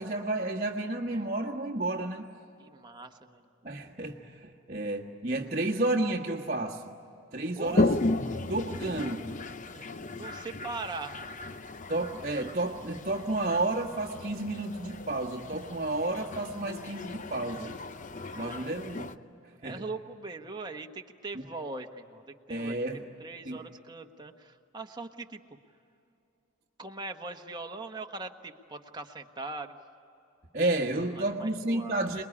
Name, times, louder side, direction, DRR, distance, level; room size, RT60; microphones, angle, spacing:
voice 1, 0.0-2.3 3.6-6.8 7.3-8.0 8.5-9.3 11.9-17.7 18.3-19.1 19.6-19.8 21.3-21.4 22.5-23.0 23.4-23.6 30.5-32.2, right 2 dB, 35° right, -4 dB, 1.4 m, -31 dB
voice 2, 2.6-3.5 7.6-8.0 9.7-11.3 18.3-18.6 19.6-22.8 23.2-25.4 26.8-29.8 31.2-32.1, right 3 dB, 20° right, 3 dB, 1.3 m, -41 dB
Toilet flush, 7.6-19.1, left 2 dB, 35° left, 0.7 m, -35 dB
28.0 x 21.0 x 9.9 m, 2.8 s
head